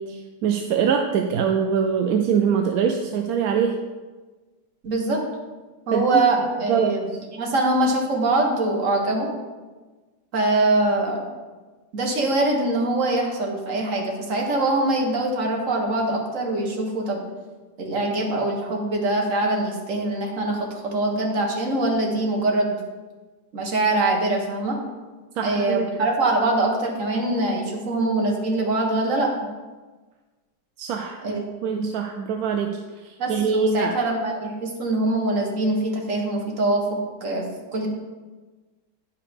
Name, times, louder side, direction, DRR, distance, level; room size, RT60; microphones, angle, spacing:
voice 1, 0.0-3.8 5.9-6.2 6.7-7.0 25.4-25.9 30.8-34.0, right 6 dB, 65° right, 4 dB, 0.9 m, -24 dB
voice 2, 4.8-5.2 5.9-7.0 7.4-9.3 10.3-11.2 11.9-17.3 17.8-22.8 23.5-24.8 25.4-29.3 31.2-31.4 31.7-31.8 33.2-37.4 37.7-37.9, right 2 dB, 45° right, 0 dB, 1.8 m, -23 dB
10.0 x 5.7 x 5.2 m, 1.3 s
omnidirectional pair, 1.9 m